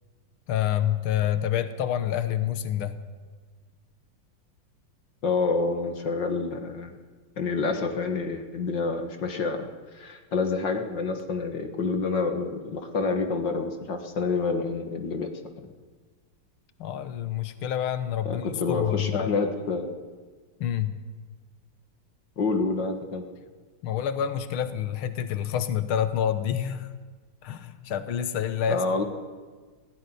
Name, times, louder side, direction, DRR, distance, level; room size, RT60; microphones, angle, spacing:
voice 1, 0.5-3.0 16.8-19.3 20.6-20.9 23.8-26.9 27.4-28.8, left 10 dB, 80° left, 10 dB, 1.9 m, -28 dB
voice 2, 5.2-6.9 7.4-9.7 9.9-15.3 18.2-19.9 22.4-23.2 28.7-29.0, left 4 dB, 60° left, 5 dB, 2.4 m, -28 dB
18.0 x 16.5 x 9.9 m, 1.5 s
omnidirectional pair, 2.3 m